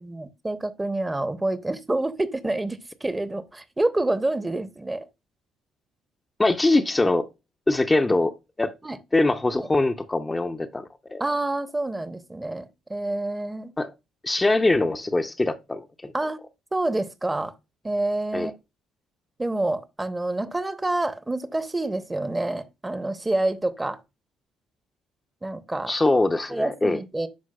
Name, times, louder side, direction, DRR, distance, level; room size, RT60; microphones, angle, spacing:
voice 1, 0.0-5.1 8.8-9.0 9.5-9.7 11.2-13.7 16.1-16.4 16.7-17.5 17.8-18.5 19.4-24.0 25.4-25.9 26.5-27.3, right 2 dB, 15° right, 0.9 m, -27 dB
voice 2, 6.4-7.3 7.7-8.3 8.6-8.7 9.1-11.2 13.8-13.9 14.2-16.1 18.3-18.5 25.9-27.0, left 2 dB, 20° left, 0.6 m, -22 dB
11.5 x 4.6 x 2.3 m
figure-of-eight pair, 45°, 0 cm